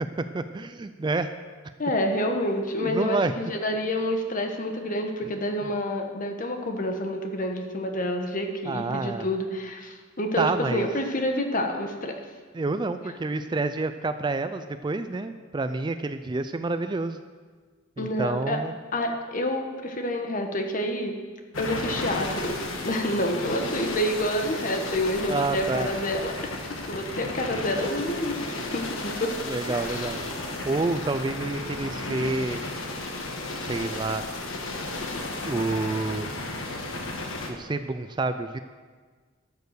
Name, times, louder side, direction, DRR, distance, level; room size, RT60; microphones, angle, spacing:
voice 1, 0.2-1.3 2.8-3.3 5.2-5.3 8.6-9.3 10.4-10.9 12.5-17.2 18.0-18.7 25.3-25.9 29.5-30.2 30.7-32.6 33.7-34.2 35.5-36.3 37.5-38.6, right 3 dB, 20° right, 10 dB, 0.3 m, -28 dB
voice 2, 1.8-10.5 10.7-12.2 18.0-18.6 18.9-21.2 21.6-22.6 22.8-26.6 26.9-29.4 29.7-30.1, left 1 dB, 40° left, 4 dB, 1.2 m, -28 dB
sound 1, 21.5-37.5, left 2 dB, 85° left, 1.4 m, -33 dB
13.0 x 6.8 x 6.8 m, 1.5 s
head